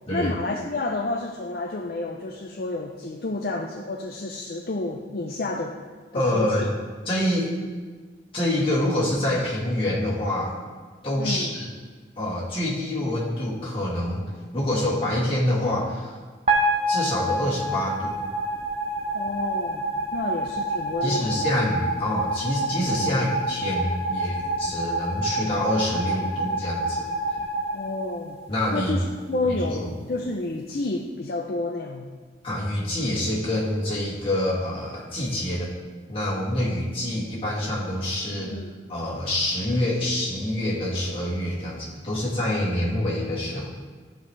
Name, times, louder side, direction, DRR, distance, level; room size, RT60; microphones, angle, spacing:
voice 1, 0.1-5.7 6.1-6.7 11.2-11.6 19.1-19.8 20.1-21.5 23.0-23.3 27.7-28.4 28.7-32.1 38.4-38.7, left 2 dB, 55° left, 1 dB, 0.6 m, -30 dB
voice 2, 6.1-6.7 7.1-7.5 8.3-10.5 11.0-11.7 12.2-14.2 14.5-16.2 16.9-18.2 21.0-27.1 28.5-28.9 29.7-29.9 32.4-35.7 36.1-38.6 38.9-43.7, left 1 dB, 30° left, -7 dB, 2.3 m, -26 dB
sound 1, 16.5-28.7, right 1 dB, 35° right, 0.8 m, -28 dB
14.0 x 5.2 x 3.3 m, 1.5 s
head